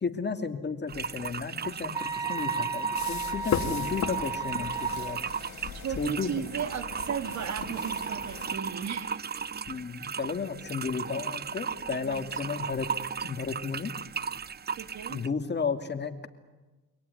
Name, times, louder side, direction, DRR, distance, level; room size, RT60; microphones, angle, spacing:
voice 1, 0.0-5.2 6.0-6.4 9.7-12.9 13.2-13.9 15.1-16.3, left 5 dB, 35° left, 8 dB, 2.6 m, -33 dB
sound 1, 0.9-15.3, right 6 dB, 35° right, 0.7 m, -36 dB
sound 2, 1.9-5.2, right 4 dB, 10° right, 2.5 m, -34 dB
sound 3, 2.9-8.6, left 8 dB, 65° left, 2.2 m, -37 dB
voice 2, 5.8-9.2 12.0-12.3 14.7-15.2, right 8 dB, 65° right, 11 dB, 2.2 m, -35 dB
25.5 x 18.5 x 9.8 m, 1.2 s
cardioid pair, 90°, 30 cm